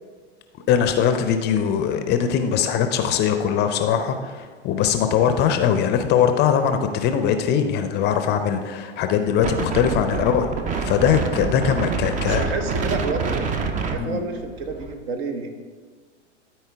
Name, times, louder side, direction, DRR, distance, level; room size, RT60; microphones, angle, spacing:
voice 1, 0.7-10.5 10.8-12.4 14.0-14.2, left 8 dB, 30° left, 8 dB, 0.5 m, -21 dB
Wind, 9.4-14.9, right 5 dB, 20° right, 0.5 m, -27 dB
voice 2, 10.1-10.5 12.2-13.5 13.9-15.5, right 3 dB, 60° right, 6 dB, 1.1 m, -29 dB
13.0 x 4.4 x 3.4 m, 1.5 s
hypercardioid pair, 95°, 35 cm